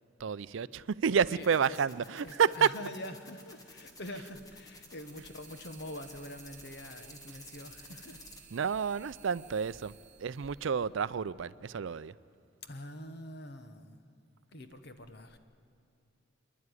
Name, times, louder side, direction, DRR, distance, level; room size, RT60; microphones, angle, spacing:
voice 1, 0.2-2.7 8.5-12.1, right 6 dB, 70° right, 0.4 m, -30 dB
voice 2, 1.2-1.8 2.2-8.2 12.6-14.0 14.5-15.4, left 1 dB, 55° left, 1.2 m, -45 dB
sound 1, 1.4-8.4, left 2 dB, 20° left, 1.6 m, -52 dB
sound 2, 3.7-11.6, right 6 dB, 35° right, 1.8 m, -57 dB
27.5 x 11.0 x 9.7 m
head